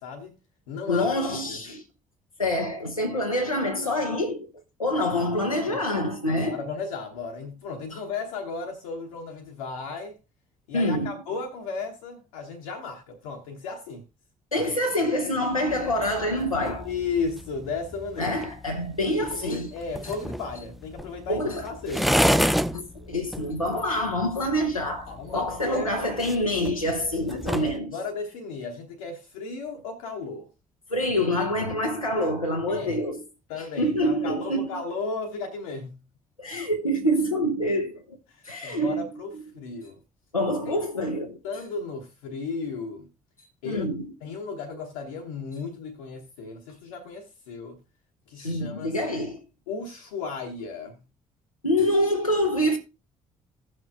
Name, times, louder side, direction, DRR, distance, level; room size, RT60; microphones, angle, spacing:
voice 1, 0.0-0.4 0.7-1.1 1.5-1.6 5.7-5.8 6.3-10.2 10.7-14.0 16.8-18.4 19.3-22.1 25.1-26.1 27.6-30.5 32.7-33.0 33.5-36.0 38.3-40.0 40.7-40.8 41.4-43.1 43.6-43.9 44.2-47.8 48.3-49.0 49.7-51.0, left 4 dB, 70° left, 1.0 m, -35 dB
voice 2, 0.9-1.8 2.4-4.5 4.8-6.6 7.9-8.0 10.7-11.2 14.5-16.9 18.2-19.7 20.0-20.1 21.3-21.7 22.7-28.0 30.9-33.2 33.6-34.8 36.4-38.2 38.4-39.4 40.3-41.4 43.4-44.1 48.4-49.4 51.6-52.8, left 1 dB, 90° left, 0.6 m, -26 dB
sound 1, 15.7-27.8, equal, ahead, 0.4 m, -31 dB
16.5 x 6.3 x 2.4 m
figure-of-eight pair, 45°, 17 cm